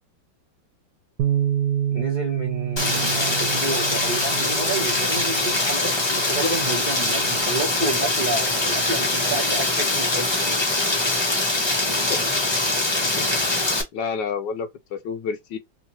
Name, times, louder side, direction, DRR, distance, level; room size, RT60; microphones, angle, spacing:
Bass guitar, 1.2-7.4, right 10 dB, 65° right, 1.2 m, -29 dB
voice 1, 1.9-10.6, right 2 dB, 35° right, 0.8 m, -30 dB
Rain, 2.8-13.8, left 2 dB, 25° left, 0.5 m, -23 dB
voice 2, 13.9-15.6, left 6 dB, 75° left, 1.4 m, -29 dB
3.6 x 2.7 x 2.8 m
omnidirectional pair, 2.0 m